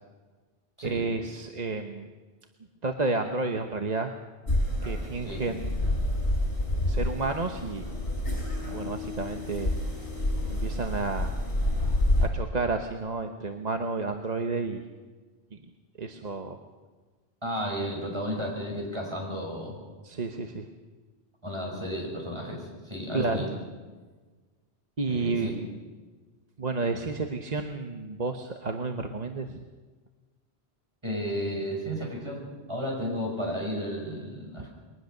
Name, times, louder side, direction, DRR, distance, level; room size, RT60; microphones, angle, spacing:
voice 1, 0.8-2.1 2.8-4.1 4.8-5.8 6.9-7.9 8.7-9.7 10.5-11.3 12.3-14.8 16.0-16.6 20.0-20.6 23.1-23.4 25.0-25.7 26.6-29.6, right 3 dB, 40° right, 5 dB, 1.1 m, -31 dB
sound 1, 4.5-12.3, left 1 dB, 50° left, 5.0 m, -28 dB
voice 2, 17.4-19.8 21.4-23.5 25.1-25.5 31.0-34.7, equal, 25° right, -1 dB, 5.8 m, -33 dB
22.0 x 19.0 x 6.6 m, 1.4 s
omnidirectional pair, 1.1 m